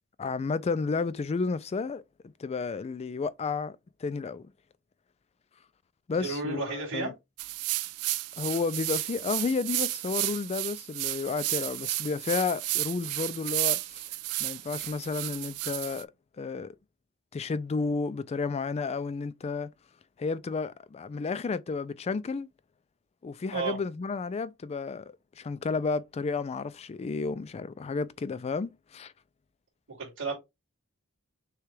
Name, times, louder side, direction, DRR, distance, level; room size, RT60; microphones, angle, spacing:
voice 1, 0.2-2.0 2.4-3.8 4.0-4.5 6.1-7.1 8.4-14.1 14.4-16.1 16.4-16.7 17.3-19.7 20.2-22.5 23.2-29.1, left 4 dB, 30° left, 0.3 m, -32 dB
voice 2, 6.2-7.1 23.5-23.8 29.9-30.3, right 4 dB, 55° right, 2.6 m, -32 dB
sound 1, 7.4-16.0, right 18 dB, 75° right, 0.4 m, -32 dB
6.5 x 2.3 x 3.2 m
head